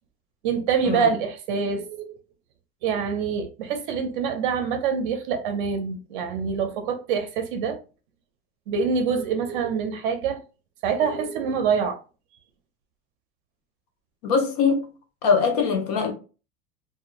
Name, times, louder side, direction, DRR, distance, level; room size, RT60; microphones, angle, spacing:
voice 1, 0.4-2.2 2.8-7.8 8.7-10.4 10.8-12.0, right 6 dB, 50° right, 0.6 m, -25 dB
voice 2, 14.2-14.9 15.2-16.1, left 5 dB, 40° left, 0.4 m, -22 dB
2.6 x 2.3 x 2.9 m
supercardioid pair, 180°, 32 cm